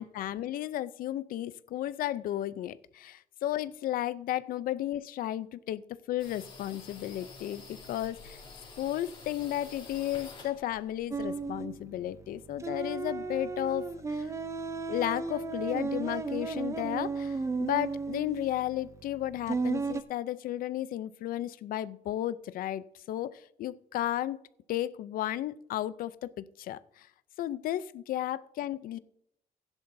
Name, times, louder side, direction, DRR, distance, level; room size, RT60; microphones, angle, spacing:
voice 1, 0.0-5.8 6.1-8.4 8.8-14.3 14.9-24.4 24.7-27.1 27.4-29.0, left 13 dB, 70° left, 17 dB, 0.5 m, -34 dB
sound 1, 6.2-11.7, left 4 dB, 35° left, 3.4 m, -49 dB
sound 2, 11.1-20.0, right 4 dB, 20° right, 0.5 m, -34 dB
16.0 x 10.5 x 2.6 m, 0.74 s
cardioid pair, 160°, 15 cm